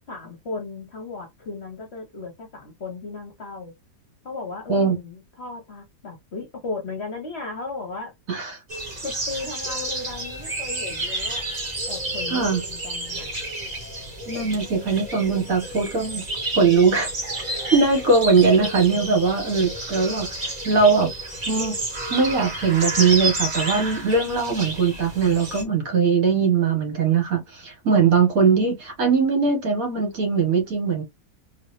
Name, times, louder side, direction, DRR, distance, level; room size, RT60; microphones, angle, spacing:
voice 1, 0.1-3.7 4.2-8.1 9.0-11.4 11.9-13.3, left 3 dB, 45° left, 1.0 m, -35 dB
voice 2, 8.3-8.6 12.3-12.6 14.3-16.3 16.5-17.1 17.7-21.1 21.5-21.7 22.1-31.0, right 5 dB, 55° right, 1.7 m, -20 dB
french coutryside sunrise, 8.7-25.6, right 2 dB, 25° right, 1.4 m, -30 dB
4.0 x 2.7 x 3.1 m
omnidirectional pair, 1.9 m